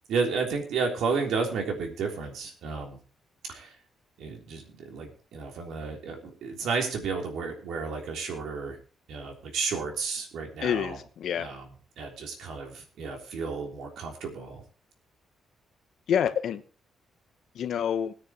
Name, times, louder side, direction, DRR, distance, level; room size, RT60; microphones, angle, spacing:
voice 1, 0.1-3.0 3.5-3.8 4.2-8.8 9.1-11.0 11.4-11.7 12.0-14.6, right 4 dB, 85° right, 2 dB, 3.5 m, -32 dB
voice 2, 10.6-11.5 16.1-16.6 17.5-18.1, left 8 dB, 65° left, 10 dB, 1.0 m, -27 dB
20.5 x 9.7 x 3.0 m, 0.38 s
cardioid pair, 160°, 0 cm